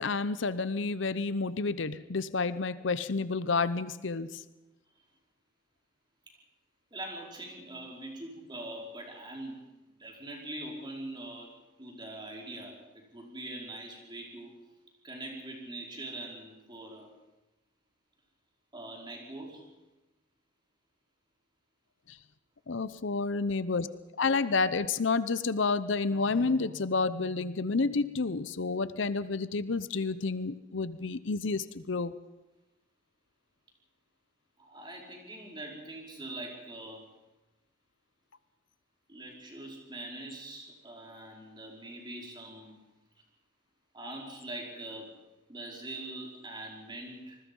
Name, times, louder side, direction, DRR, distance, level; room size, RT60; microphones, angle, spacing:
voice 1, 0.0-4.4 22.7-23.9 24.2-32.1, left 4 dB, 70° left, 15 dB, 0.8 m, -30 dB
voice 2, 6.9-9.7 10.0-11.5 11.8-14.5 15.0-17.1 18.7-19.7 34.6-37.1 39.1-42.8 43.9-45.1 45.5-47.4, right 1 dB, 25° right, 0 dB, 5.0 m, -43 dB
27.0 x 20.5 x 5.5 m, 1.0 s
head